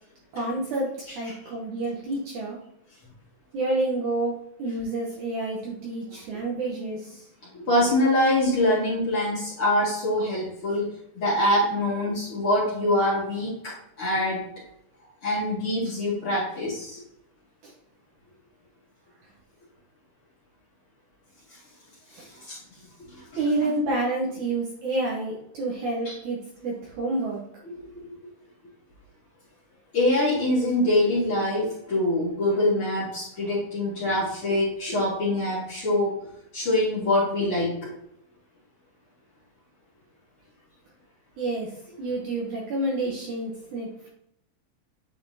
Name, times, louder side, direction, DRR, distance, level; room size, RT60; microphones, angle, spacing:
voice 1, 0.3-2.6 3.5-7.3 17.6-17.7 22.1-22.3 23.4-27.4 41.4-41.7 42.0-44.1, right 2 dB, 65° right, -2 dB, 2.0 m, -29 dB
voice 2, 7.5-10.9 11.2-14.4 15.2-17.0 22.5-22.6 23.1-23.2 26.1-26.2 27.7-27.9 29.9-36.1 36.5-37.9, left 1 dB, 40° left, -7 dB, 2.4 m, -24 dB
8.8 x 4.2 x 2.8 m, 0.76 s
omnidirectional pair, 4.4 m